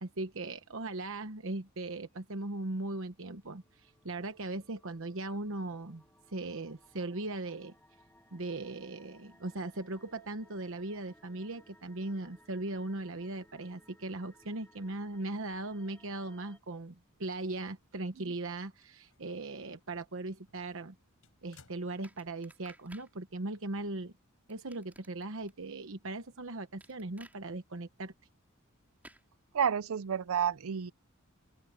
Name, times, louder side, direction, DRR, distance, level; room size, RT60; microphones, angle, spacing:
voice 1, 0.0-7.7 8.3-20.9 21.4-24.1 24.5-28.1, right 2 dB, 65° right, 1.1 m, -39 dB
sound 1, 3.3-16.6, equal, 10° left, 3.7 m, -63 dB
sound 2, 18.2-19.4 19.8-19.9 20.4-22.6 22.9-23.0 24.2-24.3, left 4 dB, 90° left, 4.7 m, -64 dB
sound 3, 22.0-23.1 24.5-25.5 26.8-27.4 29.0-29.2, right 1 dB, 10° right, 5.8 m, -56 dB
voice 2, 29.5-30.9, right 8 dB, 85° right, 0.5 m, -30 dB
open air
head